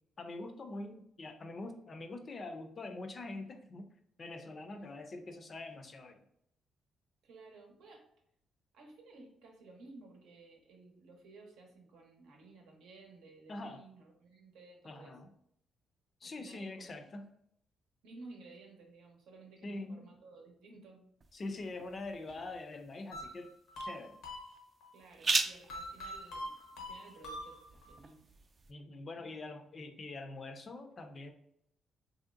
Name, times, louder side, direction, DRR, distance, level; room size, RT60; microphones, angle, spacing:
voice 1, 0.2-3.9 4.2-6.2 13.5-13.8 14.8-15.3 16.2-17.3 19.6-20.1 21.3-23.5 23.8-24.2 28.7-31.3, left 2 dB, 40° left, 6 dB, 0.4 m, -44 dB
voice 2, 7.2-8.0 8.7-15.1 16.2-17.1 18.0-21.0 24.9-28.3 29.3-29.6, right 3 dB, 85° right, 1 dB, 0.8 m, -55 dB
sound 1, 21.2-28.7, right 3 dB, 35° right, 0.3 m, -40 dB
sound 2, 23.1-24.9 25.7-28.0, left 1 dB, 90° left, 0.8 m, -44 dB
3.0 x 2.7 x 2.4 m, 0.72 s
cardioid pair, 90°, 0 cm